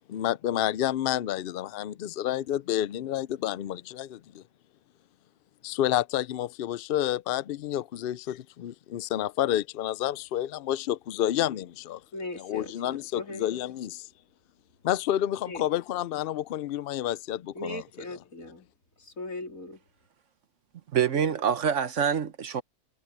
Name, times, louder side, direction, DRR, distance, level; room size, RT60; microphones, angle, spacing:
voice 1, 0.1-4.4 5.6-12.0 12.4-14.1 14.8-17.8, left 12 dB, 65° left, 0.5 m, -29 dB
voice 2, 12.1-13.5 15.5-15.6 17.5-18.7 19.0-19.8, left 1 dB, 80° left, 3.8 m, -39 dB
voice 3, 20.9-22.6, right 8 dB, 65° right, 1.3 m, -26 dB
omnidirectional pair, 1.4 m